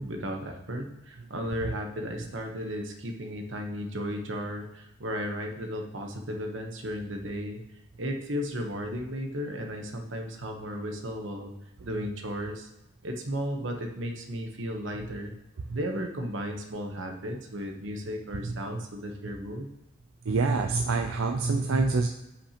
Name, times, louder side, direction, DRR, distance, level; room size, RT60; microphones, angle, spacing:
voice 1, 0.0-7.6 8.0-11.5 11.8-12.7 13.0-15.3 15.7-19.7, equal, 65° right, 3 dB, 1.1 m, -34 dB
voice 2, 20.2-22.1, right 3 dB, 85° right, 4 dB, 0.5 m, -26 dB
9.8 x 5.8 x 3.0 m, 0.93 s
head